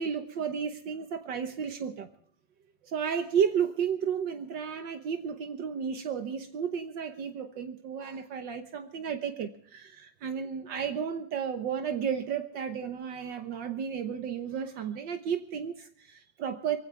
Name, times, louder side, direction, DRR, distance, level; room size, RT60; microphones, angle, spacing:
voice 1, 0.0-2.1 2.8-16.8, right 7 dB, 75° right, 7 dB, 1.7 m, -33 dB
23.0 x 16.0 x 3.4 m, 0.63 s
omnidirectional pair, 2.0 m